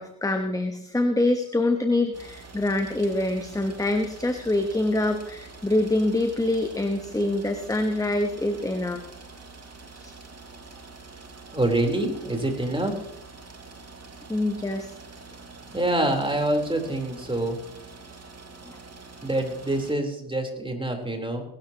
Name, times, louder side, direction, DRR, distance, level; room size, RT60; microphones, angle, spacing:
voice 1, 0.0-9.0 9.9-10.1 14.3-14.9 18.7-18.8, left 2 dB, 5° left, 6 dB, 1.3 m, -25 dB
sound 1, 2.1-19.9, right 3 dB, 30° right, 2.6 m, -45 dB
voice 2, 11.5-13.0 15.7-17.6 19.2-21.4, right 1 dB, 10° right, 2 dB, 4.0 m, -26 dB
19.0 x 12.5 x 3.0 m, 0.82 s
supercardioid pair, 80°, 48 cm